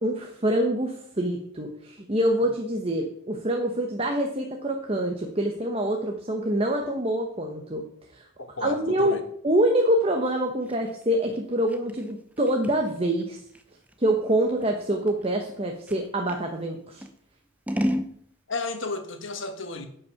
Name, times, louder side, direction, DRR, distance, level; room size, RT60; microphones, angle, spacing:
voice 1, 0.0-7.8 8.1-8.3 8.6-9.2 9.4-13.4 14.0-17.0, right 1 dB, 25° right, 2 dB, 1.0 m, -25 dB
voice 2, 8.4-9.2 18.5-19.9, left 3 dB, 65° left, 6 dB, 1.4 m, -33 dB
Scissors, 10.3-16.4 17.0-18.1, equal, 5° right, 0.6 m, -34 dB
10.0 x 5.5 x 7.1 m, 0.66 s
head